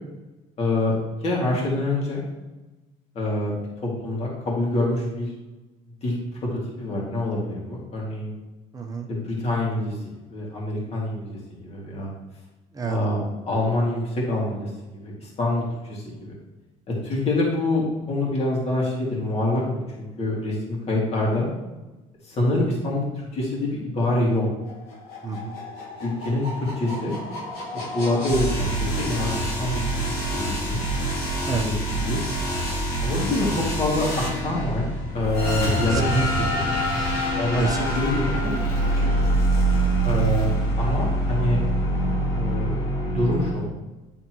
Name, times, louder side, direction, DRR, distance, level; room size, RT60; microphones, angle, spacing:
voice 1, 0.6-0.9 1.2-2.2 3.1-3.5 3.8-5.3 6.0-6.2 6.8-8.3 9.1-9.9 10.3-12.1 12.8-16.3 17.0-19.6 20.0-21.5 22.2-23.1 23.3-24.5 26.0-27.1 27.9-29.8 30.3-30.8 31.6-32.2 33.0-34.8 35.1-36.2 36.5-36.8 37.4-37.6 38.0-38.7 39.0-39.1 40.0-40.5 40.8-41.6 42.3-43.7, left 2 dB, 40° left, -3 dB, 2.0 m, -26 dB
voice 2, 8.7-9.1 12.7-13.0 25.2-25.6 31.5-31.7 35.9-36.5 37.6-38.0, right 4 dB, 20° right, 3 dB, 0.7 m, -29 dB
sound 1, 24.7-43.5, right 1 dB, 75° left, 1.8 m, -25 dB
9.4 x 3.5 x 3.0 m, 1.1 s
cardioid pair, 115°, 16 cm